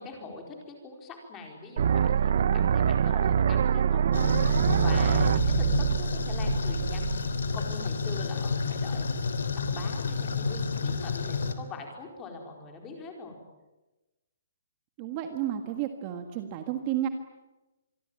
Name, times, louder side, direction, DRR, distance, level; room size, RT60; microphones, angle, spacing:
voice 1, 0.0-7.2 7.5-9.2 9.5-13.4, left 4 dB, 15° left, 2 dB, 4.5 m, -43 dB
sound 1, 1.8-7.7, right 8 dB, 45° right, 0.8 m, -25 dB
sound 2, 4.1-11.5, left 4 dB, 85° left, 3.5 m, -30 dB
voice 2, 15.0-17.1, right 11 dB, 25° right, 7 dB, 1.6 m, -31 dB
27.0 x 22.5 x 8.9 m, 1.0 s
hypercardioid pair, 175°, 0 cm